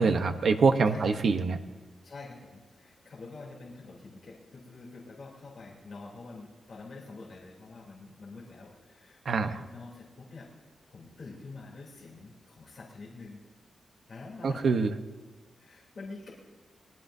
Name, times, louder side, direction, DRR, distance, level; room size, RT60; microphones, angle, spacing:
voice 1, 0.0-1.6 9.3-9.5 14.4-14.9, right 4 dB, 55° right, 8 dB, 0.9 m, -24 dB
voice 2, 0.9-1.2 2.0-10.5 10.9-13.4 14.1-14.8 15.6-16.3, left 3 dB, 40° left, -6 dB, 3.2 m, -46 dB
23.0 x 19.5 x 2.7 m, 1.3 s
wide cardioid pair, 180°, 0 cm